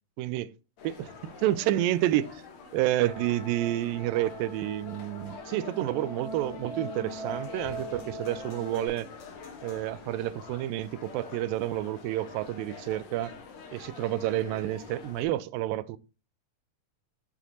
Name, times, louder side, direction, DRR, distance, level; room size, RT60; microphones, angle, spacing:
voice 1, 0.2-0.5 0.8-1.1 1.4-2.4 2.7-9.1 9.6-13.3 13.7-16.0, right 14 dB, 85° right, 2.3 m, -29 dB
sound 1, 0.8-15.2, left 5 dB, 60° left, 2.4 m, -47 dB
sound 2, 3.0-8.9, equal, 10° left, 3.7 m, -41 dB
8.4 x 7.7 x 2.6 m
omnidirectional pair, 4.0 m